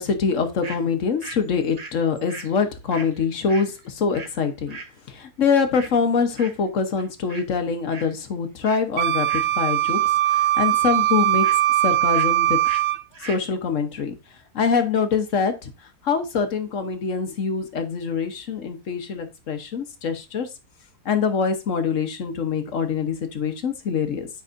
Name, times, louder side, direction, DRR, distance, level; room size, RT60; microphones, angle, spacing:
voice 1, 0.0-4.8 5.1-10.0 10.3-11.5 11.8-12.6 13.2-14.2 14.5-15.7 16.0-20.5 21.0-24.3, left 5 dB, 55° left, 7 dB, 1.2 m, -24 dB
sound 1, 0.6-0.8 1.2-4.4 4.7-4.9 5.7-6.0 6.4-6.7 7.0-7.5 7.7-8.2 8.6-8.9 9.3-10.0 10.3-11.6 12.1-12.3 12.6-12.8 13.1-13.5, right 3 dB, 35° right, 0.8 m, -40 dB
Wind instrument woodwind instrument, 9.0-13.0, right 14 dB, 75° right, 0.6 m, -20 dB
9.1 x 5.4 x 2.5 m, 0.26 s
omnidirectional pair, 1.7 m